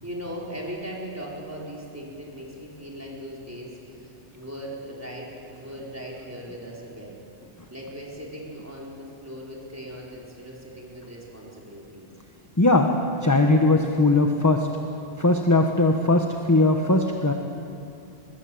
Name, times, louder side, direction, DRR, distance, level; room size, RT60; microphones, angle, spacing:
voice 1, 0.0-7.2 7.7-12.1, equal, 15° right, -4 dB, 4.7 m, -39 dB
voice 2, 12.6-12.9 13.2-14.7 15.2-17.3, left 2 dB, 15° left, 4 dB, 1.1 m, -19 dB
23.0 x 21.0 x 7.8 m, 2.6 s
omnidirectional pair, 1.1 m